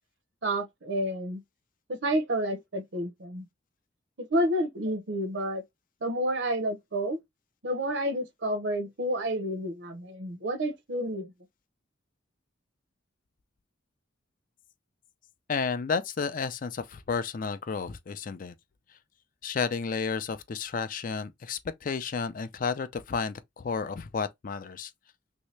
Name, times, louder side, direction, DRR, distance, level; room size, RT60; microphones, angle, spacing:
voice 1, 0.4-1.4 1.9-3.4 4.2-5.6 6.0-7.2 7.6-11.3, right 1 dB, 60° right, 0.7 m, -30 dB
voice 2, 15.5-18.5 19.4-24.9, left 5 dB, 45° left, 0.4 m, -32 dB
3.1 x 2.8 x 3.2 m
head